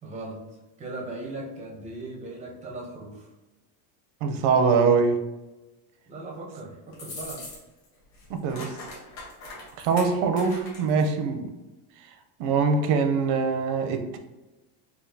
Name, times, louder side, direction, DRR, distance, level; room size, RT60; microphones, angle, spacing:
voice 1, 0.0-0.4 0.8-3.3 6.1-7.5, right 2 dB, 15° right, -2 dB, 0.4 m, -38 dB
voice 2, 4.2-5.2 8.3-8.7 9.8-11.5 12.4-14.2, right 5 dB, 85° right, 7 dB, 0.7 m, -23 dB
sound 1, 6.9-7.9 8.1-11.1, left 2 dB, 35° left, 1.1 m, -41 dB
4.3 x 2.3 x 2.7 m, 1.1 s
cardioid pair, 170°, 46 cm